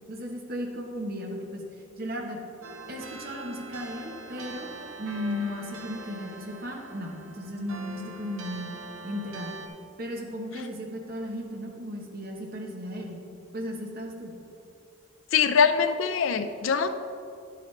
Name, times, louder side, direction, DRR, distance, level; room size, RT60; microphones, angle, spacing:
voice 1, 0.1-1.6 2.0-2.4 2.9-4.7 5.0-8.8 9.0-9.5 10.0-13.2 13.5-14.3, equal, 45° right, 0 dB, 1.1 m, -35 dB
sound 1, 2.6-9.7, right 2 dB, 80° right, 0.9 m, -43 dB
voice 2, 15.3-16.9, left 6 dB, 70° left, 9 dB, 0.5 m, -23 dB
10.5 x 7.7 x 3.3 m, 2.6 s
head